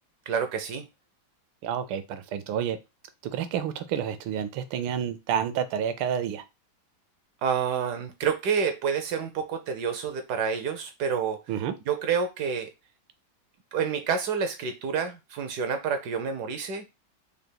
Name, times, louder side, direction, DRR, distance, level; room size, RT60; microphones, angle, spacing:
voice 1, 0.3-0.8 7.4-11.4 11.9-12.7 13.7-16.8, right 6 dB, 70° right, 7 dB, 1.0 m, -28 dB
voice 2, 1.6-2.8 3.2-6.4 11.5-11.8, right 9 dB, 90° right, 11 dB, 1.4 m, -29 dB
5.1 x 3.3 x 2.2 m, 0.25 s
omnidirectional pair, 2.2 m